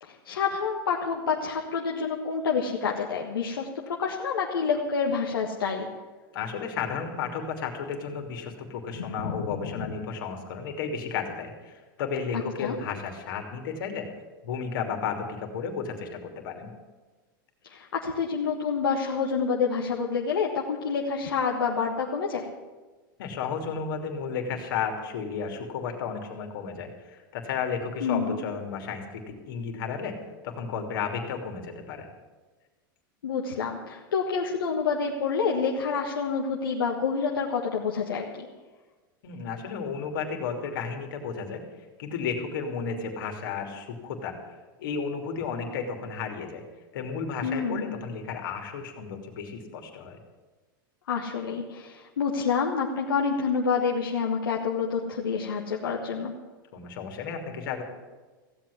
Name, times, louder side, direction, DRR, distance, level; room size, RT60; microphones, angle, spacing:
voice 1, 0.0-5.9 12.6-12.7 17.6-22.5 28.0-28.4 33.2-38.5 47.4-48.0 51.1-56.3, left 5 dB, 90° left, -1 dB, 1.5 m, -28 dB
voice 2, 6.3-14.1 14.4-16.7 23.2-30.2 30.4-32.1 39.2-41.6 42.0-44.4 44.8-46.6 46.9-50.2 56.7-57.8, left 6 dB, 70° left, 3 dB, 3.0 m, -33 dB
16.0 x 8.1 x 9.7 m, 1.3 s
hypercardioid pair, 105°, 12 cm